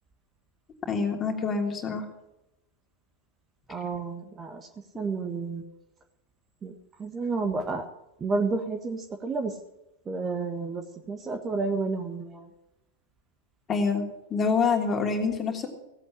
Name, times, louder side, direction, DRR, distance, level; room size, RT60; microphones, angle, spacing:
voice 1, 0.9-2.0 13.7-14.0 14.3-15.7, left 5 dB, 25° left, 2 dB, 3.2 m, -26 dB
voice 2, 3.7-4.7 4.9-5.6 6.6-7.8 8.2-9.6 10.0-12.5, right 4 dB, 20° right, 4 dB, 1.5 m, -31 dB
17.5 x 8.5 x 7.5 m, 0.88 s
figure-of-eight pair, 90°, 0 cm